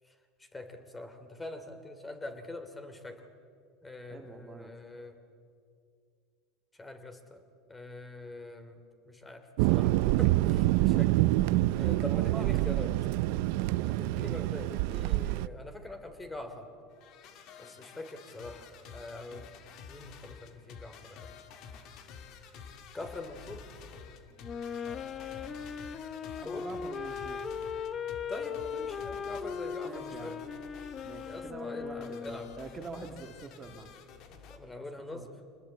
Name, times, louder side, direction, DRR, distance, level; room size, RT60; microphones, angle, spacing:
voice 1, 0.0-3.3 3.8-5.2 6.7-7.4 7.7-8.8 9.0-11.3 11.7-13.0 13.7-16.7 17.6-19.5 19.9-21.3 22.9-23.7 26.4-26.7 28.3-30.4 31.3-32.5 34.3-35.6, left 2 dB, 15° left, 8 dB, 2.9 m, -44 dB
voice 2, 4.1-4.7 11.7-12.5 26.3-27.4 29.8-30.4 31.0-33.9 35.0-35.3, right 4 dB, 25° right, 4 dB, 1.8 m, -45 dB
Thunder, 9.6-15.5, right 17 dB, 70° right, 0.5 m, -26 dB
sound 1, 16.9-34.6, left 6 dB, 55° left, 2.1 m, -50 dB
Wind instrument woodwind instrument, 24.4-32.7, left 6 dB, 30° left, 1.2 m, -38 dB
25.5 x 19.5 x 8.4 m, 2.4 s
supercardioid pair, 110°, 0 cm